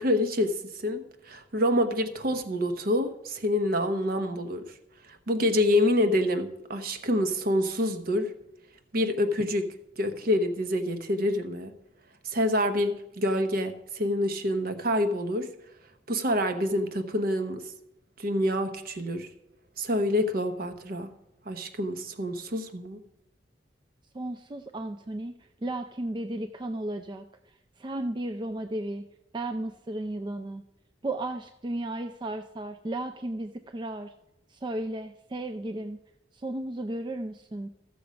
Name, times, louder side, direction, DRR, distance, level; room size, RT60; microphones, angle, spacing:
voice 1, 0.0-4.6 5.1-8.3 8.9-9.7 10.0-11.7 12.2-15.5 16.1-17.6 18.2-19.3 19.8-21.1 21.5-23.0, left 1 dB, 55° right, 0.9 m, -27 dB
voice 2, 24.1-27.2 27.8-29.0 29.3-30.6 31.0-34.1 34.5-36.0 36.3-37.7, right 1 dB, 25° right, 0.4 m, -34 dB
13.5 x 6.9 x 5.1 m
head